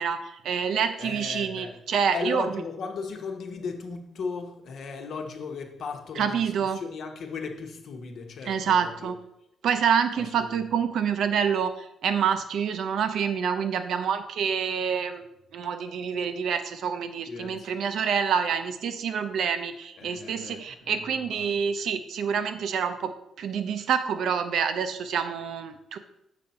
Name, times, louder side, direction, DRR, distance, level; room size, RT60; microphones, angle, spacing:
voice 1, 0.0-2.5 6.1-6.8 8.4-9.2 9.6-26.0, right 7 dB, 65° right, 9 dB, 0.6 m, -27 dB
voice 2, 1.0-1.7 2.1-9.1 10.1-10.6 17.3-17.7 20.0-21.6, left 4 dB, 55° left, 3 dB, 1.1 m, -36 dB
7.0 x 4.2 x 5.7 m, 0.81 s
cardioid pair, 145°, 0 cm